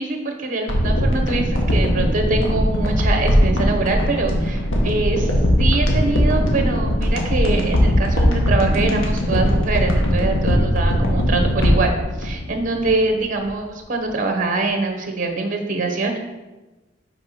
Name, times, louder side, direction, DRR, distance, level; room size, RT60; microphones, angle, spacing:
voice 1, 0.0-5.3 5.6-11.9 12.2-16.2, right 3 dB, 40° right, 4 dB, 0.9 m, -24 dB
sound 1, 0.7-13.1 13.4-13.5, equal, 80° left, 1.3 m, -19 dB
5.4 x 4.3 x 5.8 m, 1.2 s
head